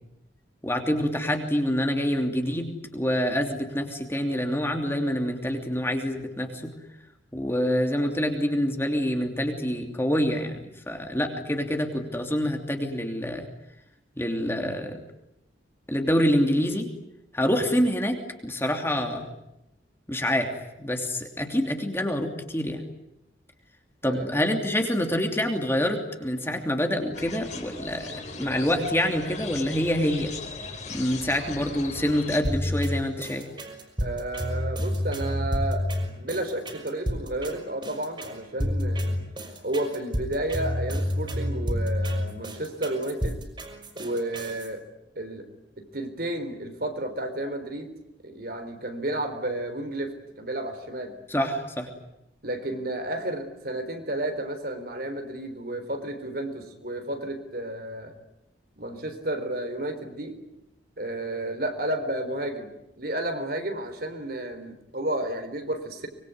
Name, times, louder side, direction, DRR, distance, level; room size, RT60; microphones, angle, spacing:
voice 1, 0.6-6.7 7.3-13.5 14.2-15.0 15.9-16.9 17.3-19.3 20.1-20.5 20.8-22.8 24.0-30.3 30.9-33.5 51.3-51.9, equal, 15° left, 4 dB, 2.9 m, -26 dB
voice 2, 24.0-24.4 34.0-35.9 36.2-39.2 39.6-43.4 44.0-44.8 45.2-45.5 45.8-47.9 48.2-51.1 52.4-58.1 58.8-60.4 61.0-62.7 63.0-66.1, right 1 dB, 55° right, 7 dB, 4.0 m, -32 dB
sound 1, 27.1-32.4, left 3 dB, 40° left, 4.4 m, -38 dB
sound 2, 32.4-44.7, equal, 25° right, 5.3 m, -29 dB
24.5 x 22.5 x 9.6 m, 0.86 s
head